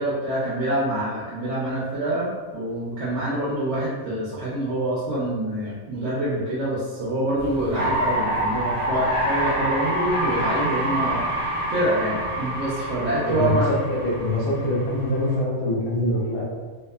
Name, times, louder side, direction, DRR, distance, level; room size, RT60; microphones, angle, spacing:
voice 1, 0.0-13.7, right 1 dB, 65° right, -8 dB, 0.8 m, -26 dB
sound 1, 7.4-15.4, right 1 dB, 90° right, 0.3 m, -27 dB
voice 2, 13.9-16.4, left 1 dB, 85° left, -5 dB, 1.1 m, -24 dB
2.8 x 2.1 x 2.3 m, 1.4 s
omnidirectional pair, 1.5 m